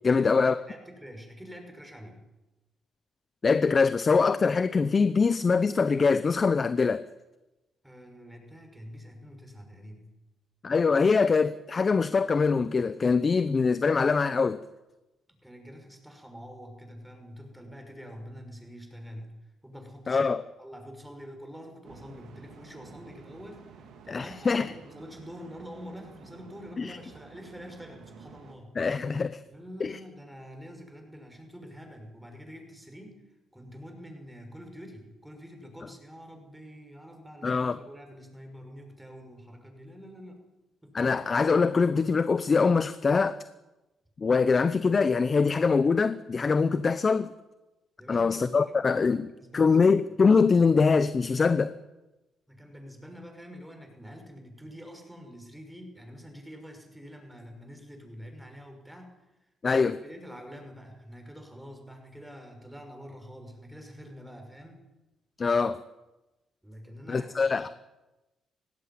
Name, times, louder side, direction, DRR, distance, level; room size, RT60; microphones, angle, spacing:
voice 1, 0.0-0.6 3.4-7.0 10.6-14.6 20.1-20.4 24.1-24.7 26.8-27.0 28.8-29.4 29.8-30.0 37.4-37.8 40.9-43.4 44.2-47.3 48.1-51.7 59.6-60.0 65.4-65.8 67.1-67.7, left 4 dB, 35° left, 13 dB, 0.8 m, -23 dB
voice 2, 0.6-2.2 7.8-10.1 15.4-19.4 19.6-20.3 20.6-28.8 29.5-33.2 33.5-40.4 40.8-41.2 48.0-49.9 52.5-59.1 59.7-64.8 66.6-67.7, equal, 5° right, 3 dB, 6.0 m, -46 dB
sound 1, 21.8-28.6, right 6 dB, 80° right, 3.2 m, -51 dB
18.5 x 17.0 x 9.5 m, 1.0 s
cardioid pair, 90°, 0 cm